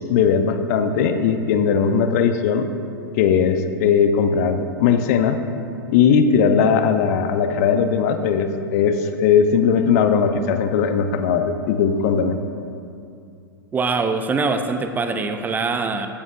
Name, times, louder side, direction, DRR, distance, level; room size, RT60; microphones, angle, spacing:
voice 1, 0.1-2.7 3.1-5.4 5.9-12.4, left 6 dB, 45° left, 8 dB, 0.8 m, -18 dB
voice 2, 13.7-16.1, right 4 dB, 15° right, 7 dB, 0.6 m, -23 dB
15.5 x 12.5 x 2.6 m, 2.5 s
figure-of-eight pair, 100°, 12 cm